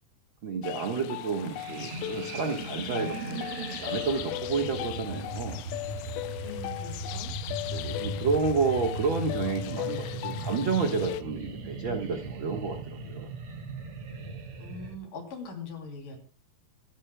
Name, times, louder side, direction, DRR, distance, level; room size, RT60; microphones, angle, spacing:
voice 1, 0.4-5.6 7.7-13.3, right 4 dB, 80° right, 4 dB, 1.1 m, -30 dB
sound 1, 0.6-11.2, left 16 dB, 80° left, 2.4 m, -38 dB
sound 2, 1.4-14.9, right 2 dB, 60° right, 1.5 m, -38 dB
voice 2, 6.4-7.3 14.6-16.2, left 3 dB, 55° left, 3 dB, 4.4 m, -41 dB
25.0 x 12.0 x 2.3 m, 0.38 s
omnidirectional pair, 4.6 m